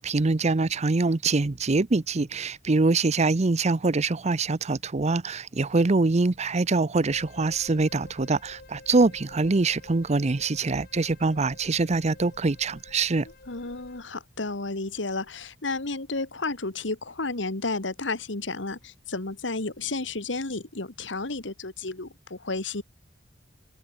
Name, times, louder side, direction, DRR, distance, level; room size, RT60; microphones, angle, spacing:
voice 1, 0.0-13.3, right 3 dB, 35° right, 0.6 m, -24 dB
sound 1, 7.1-14.0, left 2 dB, 55° left, 3.8 m, -49 dB
voice 2, 13.5-22.8, left 3 dB, 75° left, 2.0 m, -32 dB
open air
head